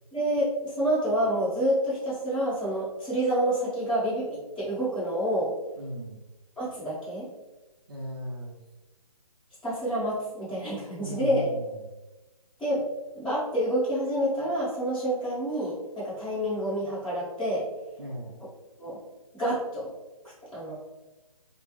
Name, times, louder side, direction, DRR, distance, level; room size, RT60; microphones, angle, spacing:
voice 1, 0.1-5.5 6.6-7.3 9.6-11.5 12.6-12.8 13.1-17.6 18.8-19.0 19.3-19.9 20.5-20.7, right 1 dB, 5° left, -16 dB, 1.2 m, -28 dB
voice 2, 5.8-6.2 7.9-8.6 11.0-11.9 18.0-18.4, equal, 35° right, -4 dB, 0.6 m, -37 dB
3.2 x 2.0 x 3.1 m, 1.1 s
hypercardioid pair, 160°, 20 cm